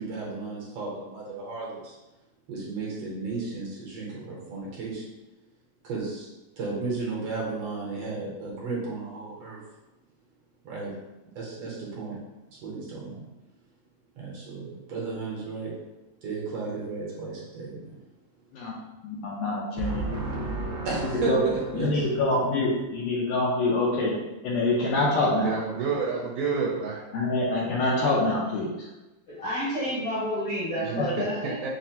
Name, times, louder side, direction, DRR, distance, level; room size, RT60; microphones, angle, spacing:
voice 1, 0.0-1.9 2.5-5.1 5.8-6.3 6.6-9.6 10.6-10.9 11.3-12.2 12.5-13.2 14.2-15.7 16.2-17.9 19.8-22.2, right 3 dB, 70° right, -4 dB, 1.6 m, -33 dB
voice 2, 19.0-20.2 21.3-21.5 21.7-24.2 24.4-25.5 27.1-28.7, left 2 dB, 85° left, -4 dB, 1.5 m, -25 dB
voice 3, 25.4-27.0 30.8-31.7, right 5 dB, 85° right, -2 dB, 2.0 m, -29 dB
voice 4, 29.3-31.6, equal, 65° left, -8 dB, 1.3 m, -30 dB
5.8 x 2.1 x 2.8 m, 1.1 s
omnidirectional pair, 3.5 m